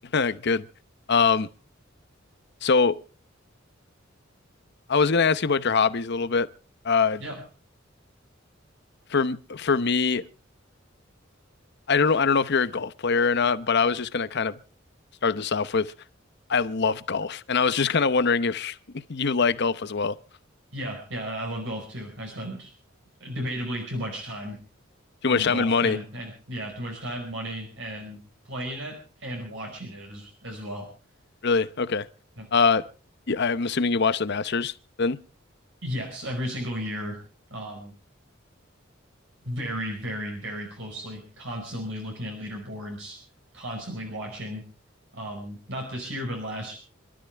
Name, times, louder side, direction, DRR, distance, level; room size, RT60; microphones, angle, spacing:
voice 1, 0.1-0.6 1.1-1.5 2.6-3.0 4.9-6.5 6.8-7.2 9.1-10.2 11.9-14.6 15.2-15.9 16.5-20.2 25.2-26.0 31.4-32.1 32.5-32.9 33.3-35.2, left 5 dB, 60° left, 0.8 m, -23 dB
voice 2, 20.7-22.7 23.2-24.6 25.3-30.9 32.4-32.5 35.8-37.2 37.5-37.9 39.4-43.2 43.5-44.6 45.1-46.8, equal, 70° right, 4.9 m, -34 dB
26.5 x 12.5 x 3.4 m
head